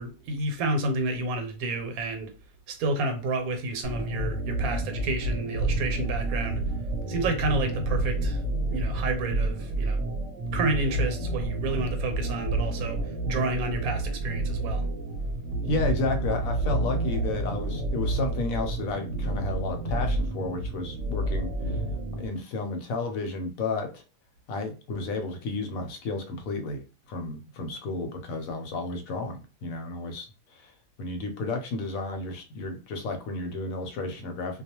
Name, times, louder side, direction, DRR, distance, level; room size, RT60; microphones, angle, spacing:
voice 1, 0.0-2.3 2.7-6.6 7.1-8.4 8.7-10.0 10.5-14.9, right 2 dB, 85° right, 1.1 m, -30 dB
sound 1, 3.8-22.3, right 2 dB, 70° right, 0.9 m, -29 dB
voice 2, 15.7-21.8 22.1-24.0 24.5-30.7 31.0-34.6, left 3 dB, 80° left, 1.0 m, -32 dB
2.3 x 2.2 x 2.9 m
omnidirectional pair, 1.5 m